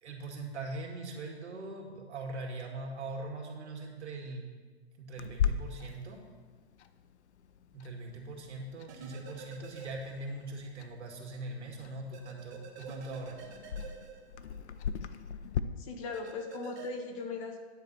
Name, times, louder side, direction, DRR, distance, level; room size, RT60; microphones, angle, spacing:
voice 1, 0.0-4.4 5.0-6.2 7.7-13.5, right 2 dB, 85° right, 0 dB, 2.2 m, -41 dB
Clock, 5.2-15.6, left 8 dB, 80° left, 0.6 m, -39 dB
sound 1, 8.9-10.6 10.9-11.0 12.1-14.9 16.1-16.9, right 5 dB, 15° right, 0.4 m, -48 dB
voice 2, 15.8-17.6, left 3 dB, 30° left, 4 dB, 0.9 m, -38 dB
9.7 x 4.1 x 7.5 m, 1.5 s
hypercardioid pair, 150°, 33 cm